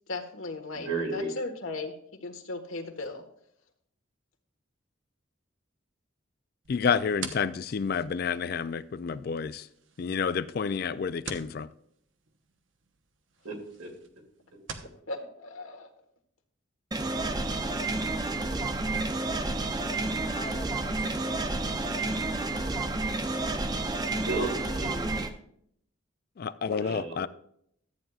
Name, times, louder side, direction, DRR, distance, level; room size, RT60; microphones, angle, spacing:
voice 1, 0.1-3.2 15.1-15.9, left 2 dB, 85° left, 1.5 m, -37 dB
voice 2, 0.7-1.3 13.4-13.9 24.3-25.1 26.6-27.2, right 2 dB, 90° right, 2.6 m, -33 dB
sound 1, 6.6-15.0, right 5 dB, 70° right, 0.9 m, -46 dB
voice 3, 6.7-9.7 10.0-11.7 26.4-27.3, left 6 dB, 50° left, 0.3 m, -29 dB
sound 2, 16.9-25.3, right 2 dB, 20° right, 0.5 m, -30 dB
voice 4, 20.2-22.1 22.5-23.7, left 2 dB, 25° left, 0.9 m, -48 dB
13.5 x 9.0 x 2.4 m
head